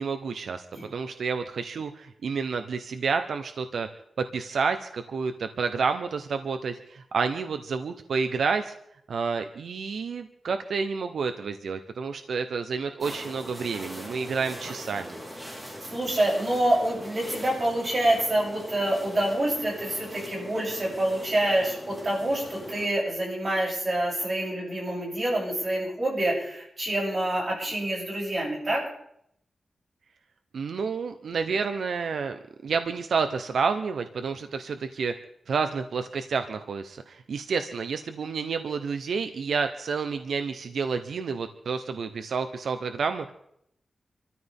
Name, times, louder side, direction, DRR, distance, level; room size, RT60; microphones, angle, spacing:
voice 1, 0.0-0.6 0.9-3.9 4.2-8.7 9.1-15.2 30.5-35.1 35.5-43.3, right 5 dB, 85° right, 8 dB, 0.9 m, -29 dB
sound 1, 13.0-22.9, equal, 10° right, 4.0 m, -41 dB
voice 2, 15.8-28.8, right 1 dB, 35° right, -4 dB, 7.9 m, -27 dB
27.5 x 13.5 x 3.6 m, 0.73 s
wide cardioid pair, 170°, 0 cm